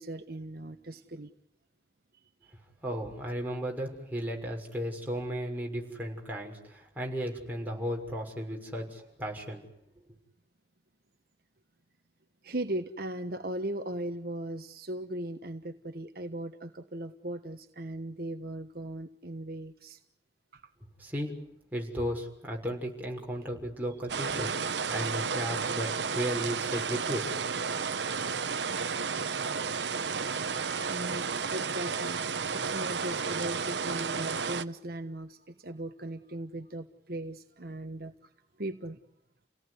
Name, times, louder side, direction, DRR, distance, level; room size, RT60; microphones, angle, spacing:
voice 1, 0.0-1.3 2.4-2.5 12.4-20.0 20.5-20.7 30.8-32.2 32.5-38.1 38.6-39.0, right 1 dB, 60° right, 6 dB, 1.3 m, -38 dB
voice 2, 2.8-9.6 21.0-21.3 21.7-27.4, equal, 10° right, -1 dB, 6.4 m, -35 dB
sound 1, 24.1-34.6, right 5 dB, 90° right, 1.1 m, -32 dB
30.0 x 18.0 x 9.9 m, 0.77 s
head